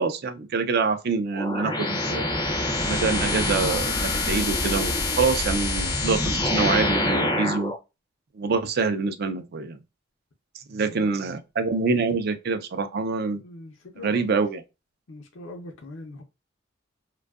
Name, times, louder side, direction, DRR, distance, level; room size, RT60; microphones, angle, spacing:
voice 1, 0.0-2.3 2.8-7.7 8.3-9.8 10.7-13.4 14.0-14.6, right 4 dB, 55° right, 0.4 m, -26 dB
sound 1, 1.3-7.8, left 2 dB, 25° left, 0.4 m, -25 dB
voice 2, 13.4-14.4 15.1-16.2, left 2 dB, 75° left, 0.5 m, -41 dB
2.6 x 2.3 x 2.3 m
head